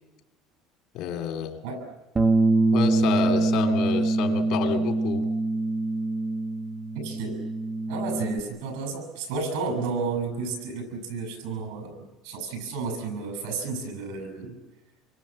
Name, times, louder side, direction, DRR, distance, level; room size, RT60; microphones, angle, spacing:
voice 1, 0.9-1.6 2.7-5.2, left 7 dB, 60° left, 5 dB, 2.7 m, -29 dB
Bass guitar, 2.2-8.4, right 2 dB, 20° right, 0.8 m, -24 dB
voice 2, 6.9-7.4 7.9-14.6, right 4 dB, 90° right, 6 dB, 7.2 m, -32 dB
26.5 x 23.5 x 7.5 m, 1.1 s
cardioid pair, 155°, 0 cm